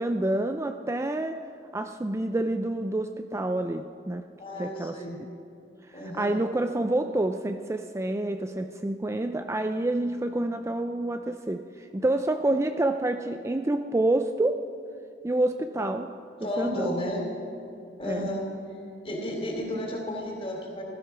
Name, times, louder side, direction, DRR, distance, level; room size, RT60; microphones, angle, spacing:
voice 1, 0.0-4.3 4.6-5.3 5.9-14.6 15.2-16.1 16.4-16.9 18.1-18.3, right 1 dB, 15° right, 7 dB, 0.4 m, -28 dB
voice 2, 4.4-5.2 5.9-6.3 16.4-17.2 18.0-18.4 19.0-20.8, left 1 dB, 30° left, -1 dB, 3.5 m, -32 dB
15.5 x 13.0 x 6.0 m, 2.6 s
head